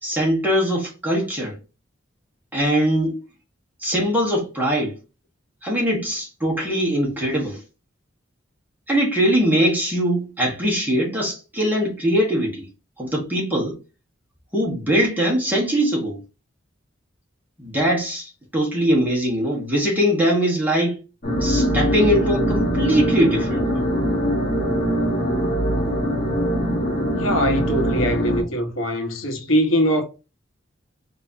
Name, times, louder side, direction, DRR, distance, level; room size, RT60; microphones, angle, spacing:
voice 1, 0.0-1.6 2.5-3.1 3.8-4.9 5.6-7.6 8.9-12.7 13.0-13.8 14.5-16.2 17.6-21.0 21.4-23.9, equal, 10° right, 1.4 m, -21 dB
sound 1, 21.2-28.4, equal, 45° left, 1.3 m, -22 dB
voice 2, 27.1-30.0, equal, 90° left, 1.0 m, -22 dB
4.3 x 2.7 x 2.9 m
head